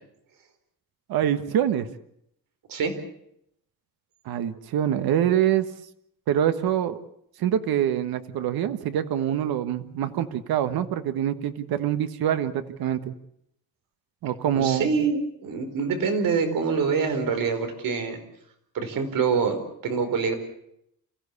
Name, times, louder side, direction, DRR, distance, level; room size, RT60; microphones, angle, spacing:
voice 1, 1.1-1.9 4.2-5.7 6.3-7.0 7.4-13.1 14.2-14.9, right 10 dB, 90° right, 10 dB, 1.5 m, -25 dB
voice 2, 14.6-18.2 18.7-20.4, right 5 dB, 65° right, 7 dB, 4.6 m, -25 dB
28.0 x 15.5 x 8.4 m, 0.76 s
cardioid pair, 160°, 36 cm